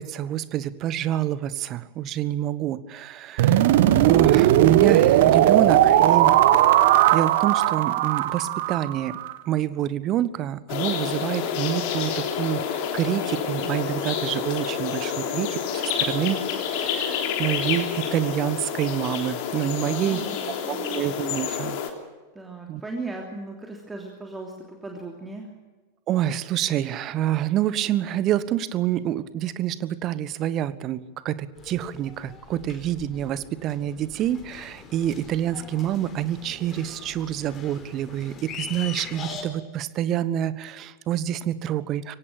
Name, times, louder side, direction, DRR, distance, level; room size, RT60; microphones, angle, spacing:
voice 1, 0.0-3.6 4.0-6.4 7.1-9.2 9.5-20.2 20.6-21.8 22.7-22.8 26.1-42.1, right 11 dB, 35° right, 16 dB, 1.2 m, -27 dB
sound 1, 3.4-9.3, right 12 dB, 55° right, 1.4 m, -18 dB
sound 2, 10.7-21.9, left 8 dB, 45° left, 3.4 m, -28 dB
voice 2, 19.8-21.1 22.3-25.5, right 3 dB, 10° right, 1 dB, 3.1 m, -37 dB
sound 3, 31.6-39.4, left 6 dB, 25° left, 4.1 m, -42 dB
23.5 x 17.5 x 9.0 m, 1.3 s
figure-of-eight pair, 90°, 0 cm